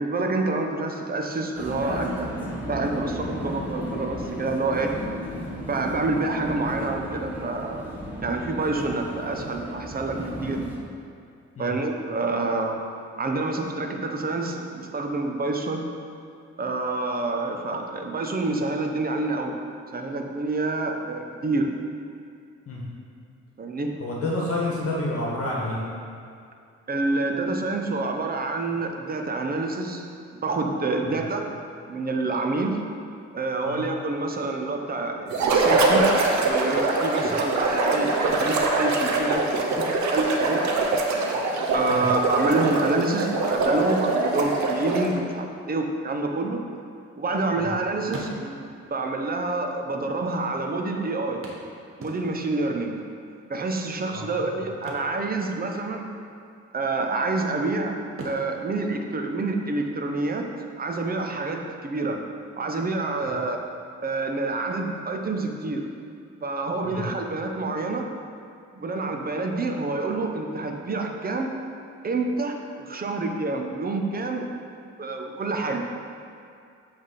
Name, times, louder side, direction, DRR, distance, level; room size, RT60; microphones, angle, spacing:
voice 1, 0.0-2.3 2.6-5.0 5.6-7.9 8.2-10.6 11.6-12.8 13.2-15.8 16.6-19.6 19.9-21.7 23.6-23.9 26.9-30.1 30.3-31.5 31.9-32.9 33.3-36.1 36.4-39.5 40.1-40.6 41.7-46.6 47.1-51.4 52.0-53.0 53.4-56.1 56.7-58.0 58.2-62.2 62.6-63.6 64.0-65.8 66.4-68.1 68.7-71.5 72.0-74.6 75.0-75.9, right 3 dB, 30° right, 3 dB, 0.7 m, -27 dB
Vehicle, 1.5-10.8, equal, 5° right, 1.1 m, -34 dB
voice 2, 24.0-25.8 31.1-31.2 33.7-33.8 41.9-42.0 47.6-47.7 54.1-54.3 63.2-63.3 66.8-67.0, left 2 dB, 50° left, -4 dB, 1.3 m, -29 dB
sound 1, 35.3-45.2, right 3 dB, 70° right, 0.8 m, -23 dB
sound 2, 46.7-47.7 48.0-48.9 49.8-49.9 50.1-50.2 51.4-52.6 54.7-56.0 56.2-56.5 57.0-57.6 58.1-59.9 61.8-61.9 62.4-62.5, right 2 dB, 45° right, 1.0 m, -42 dB
7.6 x 3.4 x 4.1 m, 2.4 s
cardioid pair, 90°, 30 cm